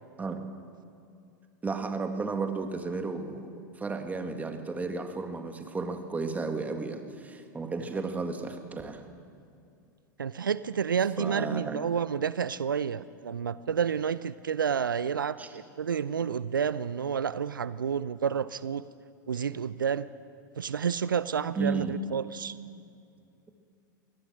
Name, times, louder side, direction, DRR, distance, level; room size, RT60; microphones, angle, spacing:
voice 1, 1.6-3.5 3.8-9.0 11.2-11.8 15.4-15.5 21.6-21.9, right 4 dB, 15° right, 6 dB, 2.0 m, -33 dB
voice 2, 10.2-18.8 19.3-20.1 20.6-22.6, right 7 dB, 80° right, 16 dB, 0.5 m, -30 dB
23.5 x 17.5 x 6.3 m, 2.5 s
figure-of-eight pair, 90°, 11 cm